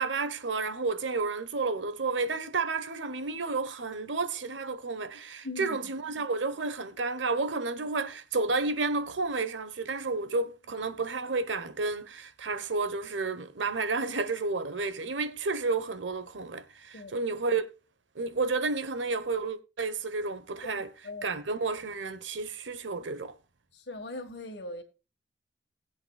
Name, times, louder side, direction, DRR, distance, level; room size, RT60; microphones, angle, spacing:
voice 1, 0.0-17.6 18.1-20.9 21.2-23.3, right 3 dB, 85° right, 1.0 m, -31 dB
voice 2, 5.4-5.9 16.9-17.2 20.7-21.3 23.7-24.8, left 2 dB, 60° left, 1.6 m, -41 dB
20.0 x 8.0 x 2.4 m
head